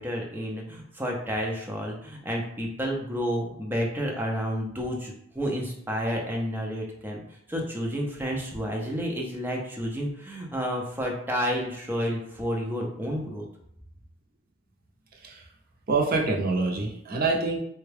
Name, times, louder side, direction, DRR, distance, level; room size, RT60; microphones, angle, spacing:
voice 1, 0.0-7.2 7.5-13.4, equal, 10° right, -1 dB, 0.6 m, -30 dB
voice 2, 15.9-17.6, right 3 dB, 50° right, -1 dB, 0.7 m, -25 dB
3.4 x 2.3 x 3.3 m, 0.70 s
head